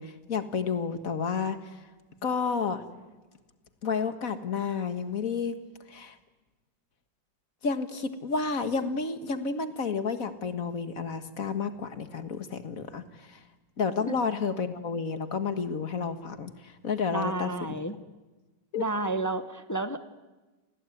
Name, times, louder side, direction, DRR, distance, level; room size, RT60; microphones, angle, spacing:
voice 1, 0.0-1.6 2.2-2.8 3.8-5.6 5.9-6.2 7.6-13.4 13.8-17.5 18.7-18.9, left 5 dB, 50° left, 9 dB, 1.9 m, -31 dB
voice 2, 17.1-17.9 18.7-20.1, right 2 dB, 15° left, 10 dB, 0.6 m, -31 dB
29.0 x 20.0 x 9.3 m, 1.2 s
omnidirectional pair, 2.0 m